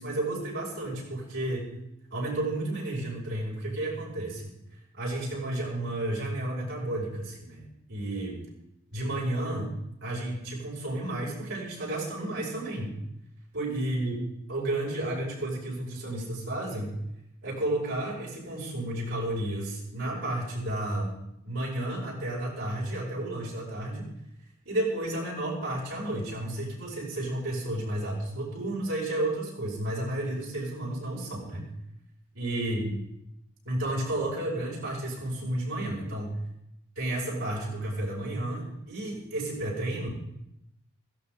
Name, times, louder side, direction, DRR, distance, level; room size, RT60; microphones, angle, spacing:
voice 1, 0.0-1.7 2.1-4.5 4.9-8.4 8.9-9.7 10.0-12.9 13.5-16.9 17.4-21.2 21.4-24.1 24.7-31.7 32.4-32.9 33.7-36.3 37.0-40.1, right 1 dB, 65° right, -4 dB, 5.2 m, -32 dB
16.5 x 15.5 x 3.6 m, 0.82 s
head